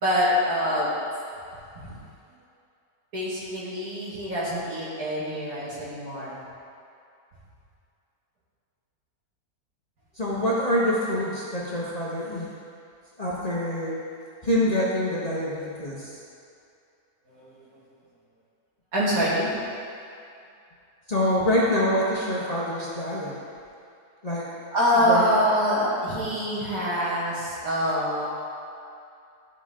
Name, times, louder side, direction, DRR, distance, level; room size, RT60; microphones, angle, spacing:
voice 1, 0.0-0.9 1.7-1.9 3.1-6.4 17.2-17.6 18.9-19.5 24.7-28.3, equal, 70° right, -7 dB, 2.3 m, -25 dB
voice 2, 10.2-12.5 13.2-14.0 14.4-16.1 21.1-23.4 24.2-24.5 25.0-25.4, left 1 dB, 30° left, -7 dB, 0.9 m, -25 dB
12.5 x 4.2 x 3.7 m, 2.5 s
omnidirectional pair, 1.6 m